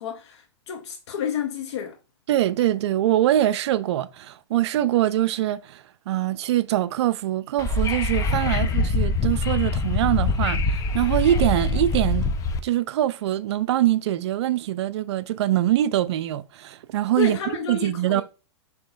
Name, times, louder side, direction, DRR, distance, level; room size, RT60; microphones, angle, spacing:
voice 1, 0.0-2.0 17.2-18.2, left 7 dB, 65° left, 0.7 m, -30 dB
voice 2, 2.3-12.2 12.6-17.4 17.7-18.2, right 13 dB, 65° right, 0.4 m, -23 dB
Wind / Subway metro underground, 7.6-12.6, left 3 dB, 20° left, 0.4 m, -24 dB
6.1 x 2.8 x 2.3 m
hypercardioid pair, 120°, 15 cm